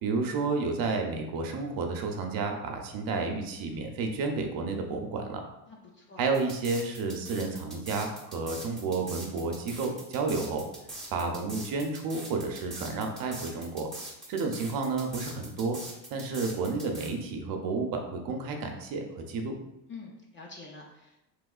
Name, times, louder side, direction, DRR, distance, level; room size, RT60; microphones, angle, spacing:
voice 1, 0.0-5.4 6.2-10.6 11.1-13.9 14.3-15.8 16.1-19.6, right 4 dB, 45° right, 4 dB, 0.6 m, -31 dB
voice 2, 5.7-6.2 19.9-21.3, left 4 dB, 25° left, -1 dB, 0.4 m, -47 dB
sound 1, 6.3-17.1, right 2 dB, ahead, 0.8 m, -42 dB
3.3 x 3.0 x 2.4 m, 0.89 s
supercardioid pair, 100°, 49 cm